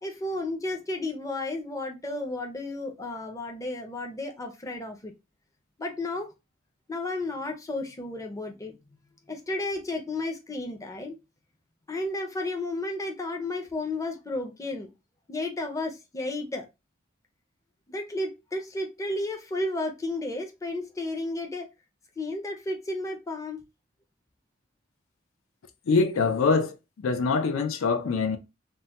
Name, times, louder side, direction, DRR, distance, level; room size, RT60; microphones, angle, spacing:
voice 1, 0.0-5.1 5.8-6.3 6.9-8.7 9.3-11.2 11.9-14.9 15.3-16.6 17.9-21.7 22.2-23.6, left 2 dB, 15° left, 0.5 m, -32 dB
voice 2, 25.9-26.7 27.0-28.4, left 4 dB, 80° left, 0.4 m, -24 dB
2.2 x 2.1 x 3.8 m
head